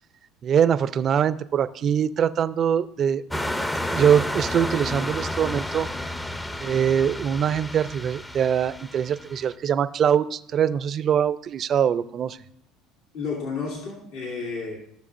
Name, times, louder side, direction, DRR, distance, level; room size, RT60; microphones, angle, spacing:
voice 1, 0.4-3.2 3.6-5.9 6.6-12.4, right 8 dB, 45° right, 14 dB, 0.5 m, -23 dB
sound 1, 3.3-9.4, left 1 dB, 10° left, 0.6 m, -31 dB
voice 2, 13.1-14.8, left 4 dB, 75° left, -3 dB, 2.3 m, -31 dB
14.5 x 6.6 x 2.6 m, 0.74 s
supercardioid pair, 90°, 0 cm